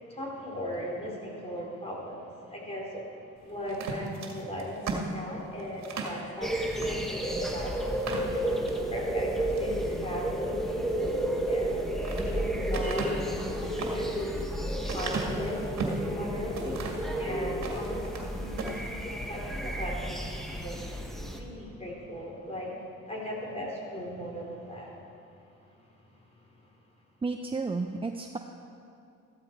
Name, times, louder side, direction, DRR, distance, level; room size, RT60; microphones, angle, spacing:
voice 1, 0.1-3.0 3.4-7.7 8.0-8.4 8.9-11.8 12.2-14.2 14.8-15.8 16.1-16.8 17.1-20.8 21.3-22.7 23.1-24.9, equal, 20° left, -3 dB, 4.1 m, -38 dB
sound 1, 3.7-6.2 6.8-7.0 7.3-7.4 7.9-8.8 9.3-9.8 11.6-12.3 12.7-16.1 16.5-17.1 17.5-18.3 18.5-18.8, right 4 dB, 65° right, 2.1 m, -36 dB
sound 2, 6.4-21.4, right 1 dB, ahead, 1.5 m, -32 dB
voice 2, 27.2-28.4, right 3 dB, 20° right, 4 dB, 0.7 m, -32 dB
15.0 x 12.5 x 4.6 m, 2.6 s
cardioid pair, 90°, 30 cm